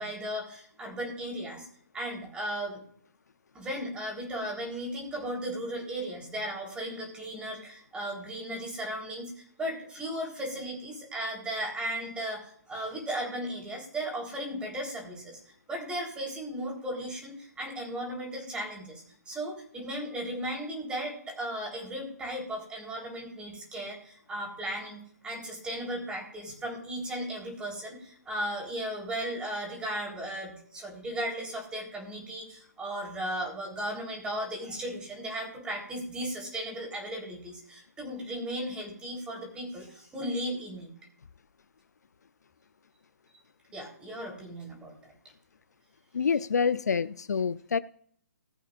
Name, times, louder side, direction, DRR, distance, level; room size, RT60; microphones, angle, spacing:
voice 1, 0.0-1.7 1.9-2.8 3.5-40.9 43.7-45.1, right 1 dB, 10° right, 3.8 m, -36 dB
voice 2, 46.1-47.8, left 6 dB, 70° left, 0.5 m, -27 dB
19.5 x 8.5 x 2.5 m
figure-of-eight pair, 135°, 9 cm